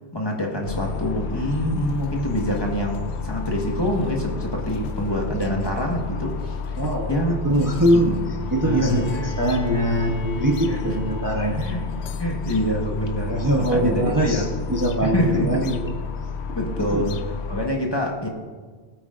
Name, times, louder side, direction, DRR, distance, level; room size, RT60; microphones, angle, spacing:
voice 1, 0.1-6.6 7.1-7.4 7.9-8.2 8.6-9.3 10.7-10.8 11.6-11.8 12.2-14.5 15.0-15.6 16.5-17.2 17.5-18.3, equal, 25° left, 0 dB, 1.5 m, -26 dB
sound 1, 0.7-17.7, left 5 dB, 80° left, 0.9 m, -31 dB
voice 2, 6.8-11.7 13.3-14.4 14.7-16.0 16.8-17.0, right 1 dB, 20° right, 0 dB, 0.9 m, -22 dB
Bowed string instrument, 8.4-12.4 13.7-13.8, left 1 dB, 60° left, 1.2 m, -37 dB
19.0 x 8.8 x 2.5 m, 1.5 s
omnidirectional pair, 1.1 m